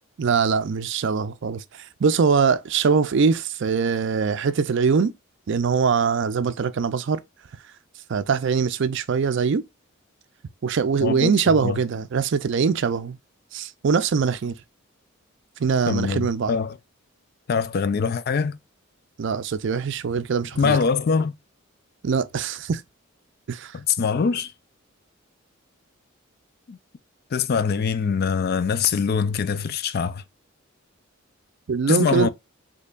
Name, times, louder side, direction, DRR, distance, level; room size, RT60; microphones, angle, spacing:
voice 1, 0.2-5.1 5.5-7.2 8.1-9.6 10.6-13.2 13.5-14.5 15.6-16.6 19.2-20.8 22.0-22.8 23.5-23.8 31.7-32.3, right 5 dB, 60° right, 0.4 m, -22 dB
voice 2, 11.0-11.8 15.9-16.8 17.5-18.6 20.6-21.3 23.7-24.5 26.7-26.8 27.3-30.2 31.9-32.3, left 5 dB, 45° left, 0.3 m, -23 dB
4.3 x 2.9 x 2.3 m
head